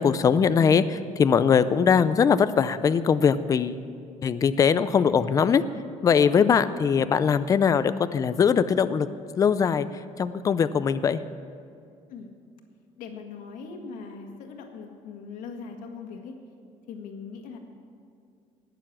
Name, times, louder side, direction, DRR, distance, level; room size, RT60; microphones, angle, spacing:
voice 1, 0.0-3.8 4.2-5.6 6.0-9.1 9.4-9.9 10.2-11.2, left 6 dB, 25° left, 14 dB, 0.4 m, -21 dB
voice 2, 13.0-16.3 16.9-17.6, left 5 dB, 85° left, 3 dB, 1.7 m, -40 dB
19.0 x 7.0 x 7.4 m, 2.3 s
cardioid pair, 165°, 13 cm